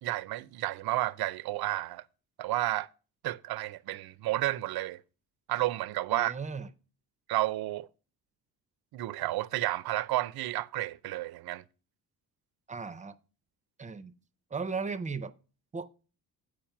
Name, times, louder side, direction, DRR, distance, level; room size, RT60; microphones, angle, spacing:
voice 1, 0.0-2.0 2.4-2.9 3.2-5.0 5.5-6.4 7.3-7.9 8.9-11.6, right 16 dB, 75° right, 0.5 m, -31 dB
voice 2, 6.1-6.7 12.7-13.2 13.8-14.1 14.5-15.3 15.7-15.9, right 4 dB, 20° right, 0.4 m, -36 dB
8.8 x 4.9 x 5.8 m
wide cardioid pair, 170°, 37 cm